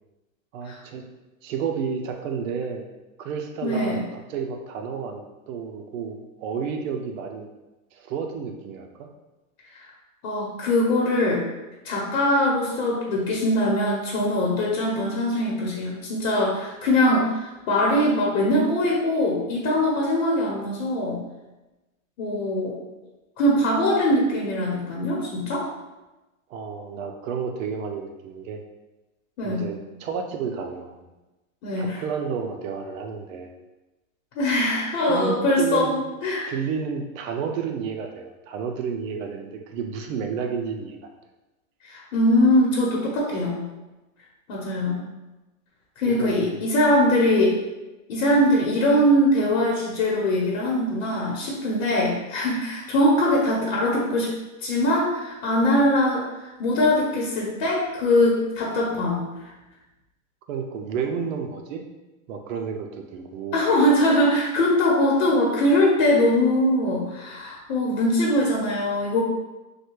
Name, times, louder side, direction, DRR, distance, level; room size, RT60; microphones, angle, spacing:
voice 1, 0.5-1.0 1.4-2.9 3.2-7.4 7.9-9.1 26.5-28.6 29.4-31.1 31.8-33.5 35.1-35.9 36.5-41.0 46.0-46.3 60.5-61.8 62.3-63.6, right 6 dB, 65° right, 4 dB, 0.6 m, -31 dB
voice 2, 3.6-4.0 10.2-11.4 11.8-21.2 22.2-22.8 23.4-25.7 29.4-29.6 31.6-32.0 34.3-36.5 41.8-43.6 44.5-45.0 46.0-47.6 48.1-54.3 54.6-59.3 63.5-69.2, left 1 dB, 65° left, -3 dB, 0.9 m, -22 dB
3.2 x 2.3 x 3.1 m, 1.1 s
supercardioid pair, 140°, 42 cm